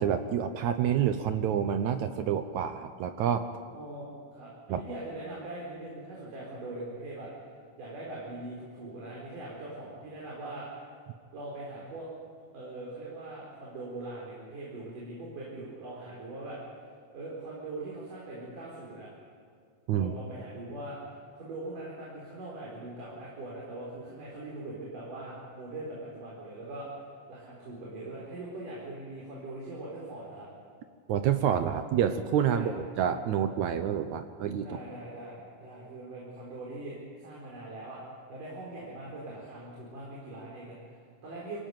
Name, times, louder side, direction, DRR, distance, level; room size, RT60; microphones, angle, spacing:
voice 1, 0.0-3.5 4.7-4.8 19.9-20.1 31.1-34.8, right 9 dB, 75° right, 8 dB, 2.1 m, -28 dB
voice 2, 3.7-7.3 7.8-10.7 11.3-12.1 12.5-16.6 17.1-19.1 19.9-27.0 27.3-30.5 32.4-32.8 34.6-38.0 38.3-41.6, right 2 dB, 90° right, -5 dB, 6.0 m, -41 dB
24.5 x 16.5 x 9.4 m, 2.2 s
omnidirectional pair, 3.6 m